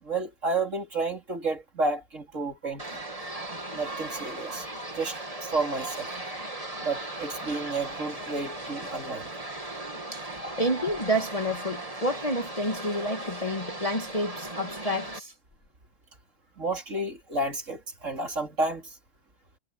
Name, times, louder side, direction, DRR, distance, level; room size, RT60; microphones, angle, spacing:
voice 1, 0.0-2.9 3.7-6.1 6.8-9.3 16.6-19.0, right 3 dB, 55° right, 3.8 m, -31 dB
sound 1, 2.8-15.2, right 2 dB, 25° right, 2.9 m, -37 dB
voice 2, 10.6-15.3, equal, 25° left, 1.9 m, -29 dB
omnidirectional pair, 1.6 m